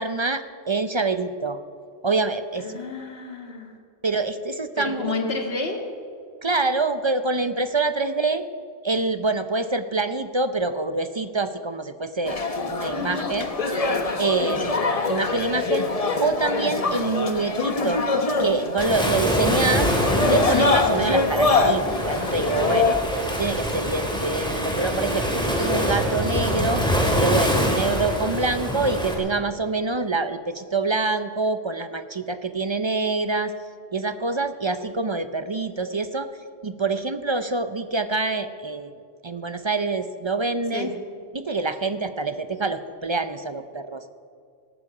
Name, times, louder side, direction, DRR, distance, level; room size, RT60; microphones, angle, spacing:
voice 1, 0.0-1.6 2.0-2.7 4.0-5.1 6.4-8.4 8.8-12.4 12.7-13.5 14.2-14.7 15.1-15.9 16.2-18.1 18.4-19.9 20.3-23.0 23.3-26.8 27.2-33.5 33.9-36.3 36.6-38.9 39.2-40.9 41.3-44.0, right 3 dB, 35° right, 10 dB, 0.5 m, -26 dB
voice 2, 2.6-3.7 4.8-5.8 12.9-13.4 14.4-14.6 40.7-40.9, left 3 dB, 65° left, 2 dB, 2.1 m, -30 dB
sound 1, 12.3-23.0, left 3 dB, 35° left, 1.0 m, -24 dB
Waves surf, 18.8-29.1, equal, 5° left, 2.4 m, -25 dB
18.0 x 14.0 x 4.9 m, 2.3 s
omnidirectional pair, 1.1 m